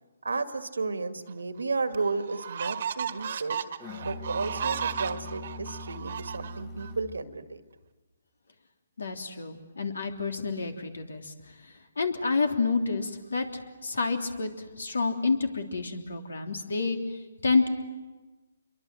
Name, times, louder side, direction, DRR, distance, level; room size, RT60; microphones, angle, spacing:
voice 1, 0.2-3.6 4.0-7.6, right 3 dB, 90° right, 9 dB, 2.0 m, -33 dB
sound 1, 1.3-1.4 1.9-6.9, right 8 dB, 55° right, 1.5 m, -35 dB
Musical instrument, 3.8-7.3, left 2 dB, 20° left, 1.4 m, -42 dB
voice 2, 9.0-11.3 12.0-14.5 14.8-17.7, left 4 dB, 80° left, 5 dB, 3.3 m, -29 dB
28.0 x 23.0 x 7.8 m, 1.2 s
hypercardioid pair, 150°, 0 cm